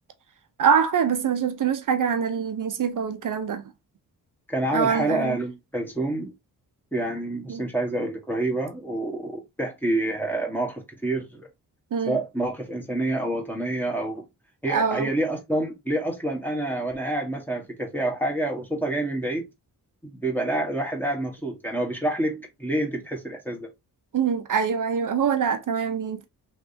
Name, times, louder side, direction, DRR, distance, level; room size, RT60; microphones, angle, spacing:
voice 1, 0.6-3.6 4.7-5.4 7.5-7.6 11.9-12.2 14.7-15.1 24.1-26.3, right 7 dB, 50° right, 0.8 m, -24 dB
voice 2, 4.5-6.3 6.9-11.5 12.0-14.2 14.6-19.5 20.0-23.7, right 1 dB, 5° left, 1.3 m, -28 dB
3.2 x 2.7 x 2.7 m
hypercardioid pair, 40°, 42 cm